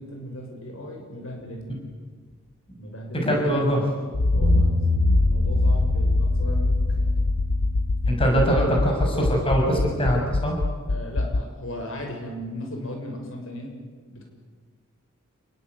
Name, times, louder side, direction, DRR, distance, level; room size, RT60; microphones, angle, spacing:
voice 1, 0.0-1.8 2.8-3.9 4.3-7.1 8.2-8.7 10.9-13.7 14.1-14.3, left 1 dB, 65° left, 2 dB, 6.6 m, -37 dB
voice 2, 3.1-3.8 8.1-10.5, equal, 25° left, 1 dB, 6.6 m, -22 dB
Accelerating revving vroom, 4.1-11.4, left 2 dB, 85° left, 0.8 m, -23 dB
Bass guitar, 4.4-10.7, left 1 dB, 70° right, 1.3 m, -30 dB
29.5 x 20.5 x 9.5 m, 1.5 s
head